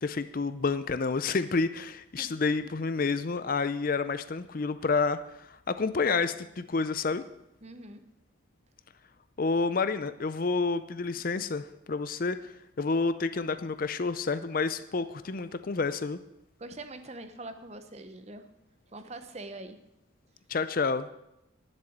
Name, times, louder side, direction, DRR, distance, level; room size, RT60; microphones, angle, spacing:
voice 1, 0.0-7.2 9.4-16.2 20.5-21.1, left 4 dB, 45° left, 12 dB, 0.5 m, -29 dB
voice 2, 7.6-8.0 16.6-18.5 18.9-19.8, right 2 dB, 35° right, 9 dB, 0.8 m, -43 dB
10.5 x 7.5 x 7.3 m, 0.86 s
head